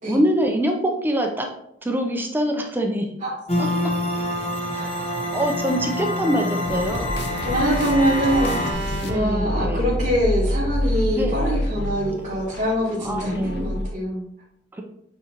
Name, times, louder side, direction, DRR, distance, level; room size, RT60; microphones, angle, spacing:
voice 1, 0.1-1.5 1.8-3.1 3.6-3.7 4.7-4.9 5.3-7.1 9.0-10.1 11.1-11.4 12.1-12.2 13.0-13.9 14.7-14.8, equal, 10° right, 2 dB, 0.6 m, -24 dB
sound 1, 3.5-8.7, left 1 dB, 35° left, 1.2 m, -26 dB
Bowed string instrument, 5.7-9.9, right 2 dB, 70° right, 1.2 m, -34 dB
sound 2, 6.7-13.9, left 1 dB, 65° left, 0.6 m, -27 dB
voice 2, 7.4-14.2, equal, 45° right, -9 dB, 1.9 m, -24 dB
8.4 x 3.8 x 3.0 m, 0.75 s
head